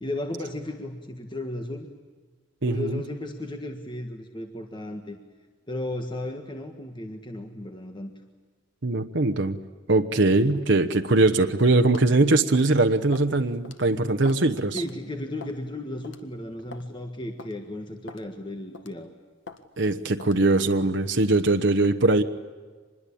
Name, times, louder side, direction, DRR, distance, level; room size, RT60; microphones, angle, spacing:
voice 1, 0.0-1.9 2.6-5.2 5.7-8.1 14.7-19.1, left 1 dB, 25° left, 5 dB, 1.5 m, -34 dB
voice 2, 2.6-3.0 8.8-9.6 9.9-14.8 19.8-22.2, right 2 dB, 65° right, 7 dB, 1.1 m, -21 dB
sound 1, 11.9-12.1 12.5-12.8 13.1-13.3 13.6-13.8 14.2-14.5 14.8-14.9 15.4-15.6 16.0-16.2 16.7-16.9 17.4-17.5 18.1-18.3 18.7-19.0 19.5-19.6 20.2-20.4, left 3 dB, 70° left, 1.8 m, -43 dB
25.5 x 21.5 x 8.6 m, 1.5 s
head